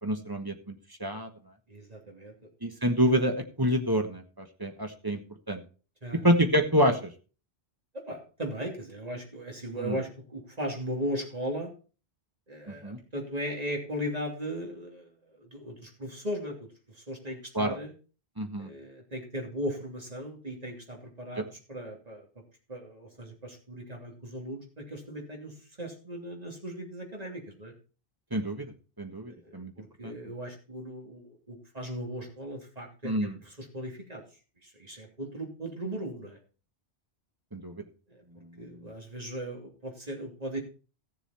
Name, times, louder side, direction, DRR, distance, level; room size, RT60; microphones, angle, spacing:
voice 1, 0.0-0.7 1.0-1.3 2.6-5.2 5.5-5.6 6.1-7.1 9.8-10.0 12.7-13.0 17.5-17.8 18.4-18.7 21.4-21.5 28.3-28.7 29.0-29.7 30.0-30.1 33.0-33.4 37.5-37.8 38.6-38.9, equal, 20° right, 5 dB, 1.3 m, -27 dB
voice 2, 1.7-2.3 6.0-6.3 7.9-11.7 12.5-17.9 18.6-22.3 22.7-27.7 29.2-34.2 34.6-36.4 38.1-38.2 38.6-40.6, equal, 35° right, 0 dB, 3.0 m, -37 dB
15.0 x 6.9 x 4.3 m, 0.37 s
omnidirectional pair, 1.1 m